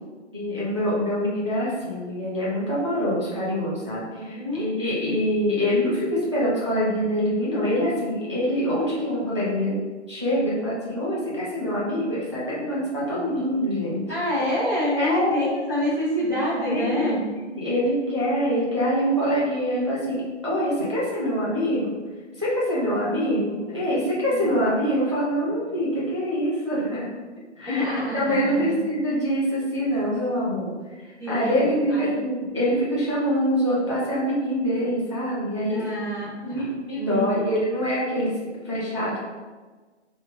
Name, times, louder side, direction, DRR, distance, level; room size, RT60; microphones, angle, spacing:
voice 1, 0.3-9.8 10.1-14.0 15.0-15.3 16.6-17.1 17.6-22.0 22.4-27.1 27.6-27.9 28.1-35.8 36.4-38.3 38.6-39.2, equal, 25° right, -8 dB, 0.4 m, -25 dB
voice 2, 4.1-4.7 14.1-17.2 24.3-24.5 27.6-28.7 31.2-31.6 31.9-32.1 35.7-37.5, left 1 dB, 15° left, -17 dB, 0.6 m, -27 dB
3.0 x 2.1 x 3.8 m, 1.3 s
figure-of-eight pair, 145°, 35 cm